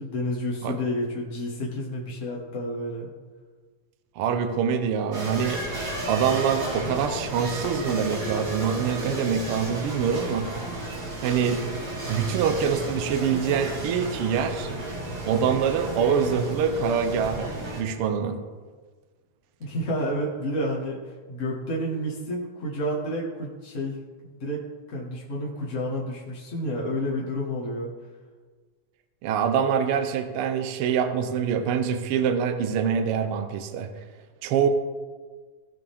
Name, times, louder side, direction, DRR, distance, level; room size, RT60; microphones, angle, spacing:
voice 1, 0.0-3.1 19.6-24.6 24.9-27.9, equal, 50° left, -4 dB, 0.9 m, -30 dB
voice 2, 4.2-5.6 6.1-10.5 11.2-11.6 12.1-14.7 15.2-18.4 29.2-33.9 34.4-34.7, right 7 dB, 80° right, 8 dB, 1.2 m, -25 dB
sound 1, 5.1-17.8, right 2 dB, 45° right, 2.3 m, -33 dB
Livestock farm animals working animals, 6.5-12.6, left 4 dB, 70° left, 1.2 m, -43 dB
16.5 x 6.0 x 3.5 m, 1.5 s
omnidirectional pair, 3.5 m